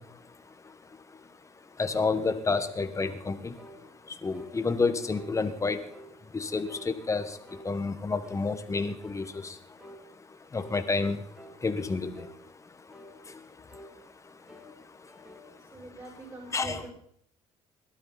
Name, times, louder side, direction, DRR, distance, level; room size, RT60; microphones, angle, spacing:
voice 1, 0.0-16.0 16.5-16.8, left 4 dB, 20° left, 9 dB, 1.5 m, -32 dB
sound 1, 3.6-3.8 4.3-4.6 5.1-5.4 5.9-6.1 6.7-6.9 7.5-7.7 8.2-8.5 9.0-9.3 9.8-10.0 10.6-10.8 11.3-11.6 12.1-12.4 12.9-13.1 13.7-13.9 14.5-14.7 15.1-15.5, equal, 5° right, 2.8 m, -49 dB
voice 2, 15.7-16.9, right 1 dB, 25° right, -6 dB, 7.7 m, -43 dB
20.0 x 12.5 x 4.1 m, 0.65 s
cardioid pair, 110°, 14 cm